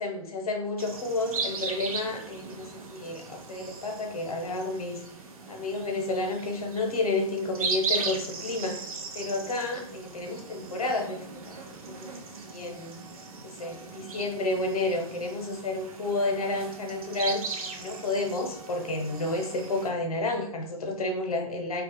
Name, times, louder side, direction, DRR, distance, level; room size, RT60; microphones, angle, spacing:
voice 1, 0.0-5.0 5.5-8.8 9.1-11.6 11.9-12.1 12.4-13.0 13.4-17.4 17.8-21.8, left 2 dB, 85° left, 3 dB, 0.7 m, -31 dB
sound 1, 0.8-19.9, right 4 dB, 75° right, 0.6 m, -38 dB
2.3 x 2.1 x 2.8 m, 0.65 s
hypercardioid pair, 150°, 18 cm